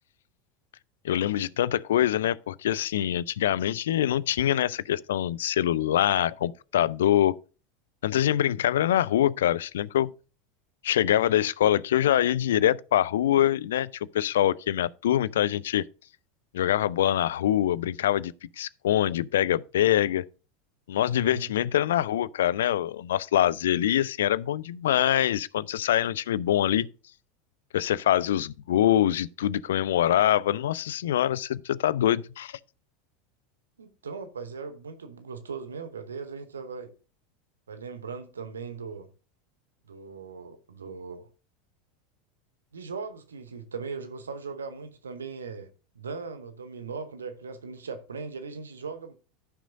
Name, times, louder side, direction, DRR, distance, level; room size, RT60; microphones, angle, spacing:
voice 1, 1.0-7.3 8.0-10.1 10.8-15.8 16.5-20.3 20.9-26.9 27.7-32.6, left 11 dB, 65° left, 0.4 m, -24 dB
voice 2, 21.1-21.5 33.8-36.9 37.7-39.1 39.9-41.3 42.7-49.1, right 5 dB, 75° right, 0.9 m, -39 dB
14.5 x 6.1 x 2.5 m
figure-of-eight pair, 80°, 0 cm